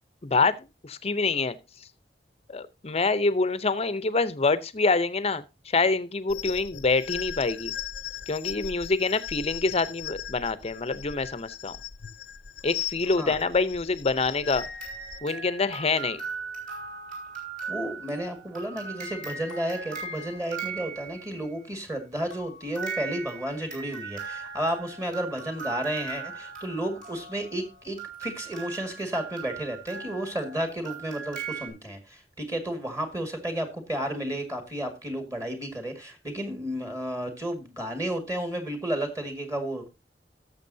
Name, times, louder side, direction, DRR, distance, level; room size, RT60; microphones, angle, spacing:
voice 1, 0.2-1.6 2.5-7.7 8.3-11.8 12.6-14.7 15.2-16.2, left 3 dB, 35° left, 15 dB, 0.7 m, -26 dB
sound 1, 6.3-15.2, left 10 dB, 70° left, 0.7 m, -38 dB
sound 2, 14.6-21.5 22.3-31.7, right 5 dB, 50° right, 5.7 m, -39 dB
voice 2, 17.7-39.9, right 1 dB, 20° right, 5 dB, 1.9 m, -32 dB
17.5 x 7.1 x 2.7 m, 0.25 s
head